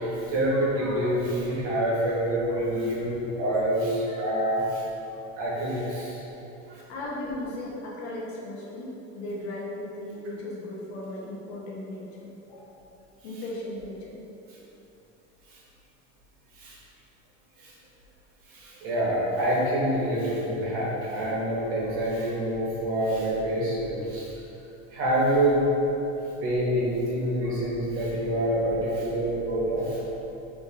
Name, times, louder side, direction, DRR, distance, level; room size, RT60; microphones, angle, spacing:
voice 1, 0.0-4.8 5.4-6.2 6.7-6.8 15.5-15.6 16.5-16.8 17.6-17.7 18.5-24.4 24.9-25.6 26.4-30.0, right 1 dB, 45° right, -5 dB, 0.9 m, -27 dB
voice 2, 6.9-12.8 13.2-14.2, left 1 dB, 85° left, -4 dB, 0.9 m, -37 dB
3.4 x 2.5 x 4.0 m, 2.9 s
cardioid pair, 165°, 31 cm